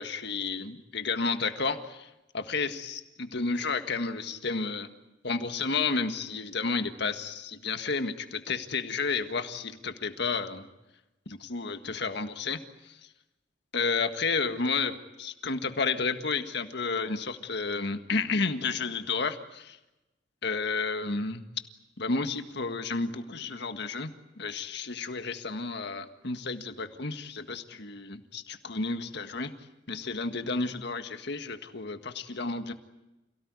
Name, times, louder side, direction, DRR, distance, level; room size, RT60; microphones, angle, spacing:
voice 1, 0.0-2.1 2.3-4.9 5.2-10.7 11.3-12.6 12.9-13.0 13.7-19.8 20.4-21.4 22.0-24.1 24.4-29.5 29.9-32.7, left 4 dB, 65° left, 8 dB, 1.7 m, -31 dB
28.5 x 17.5 x 9.6 m, 0.99 s
head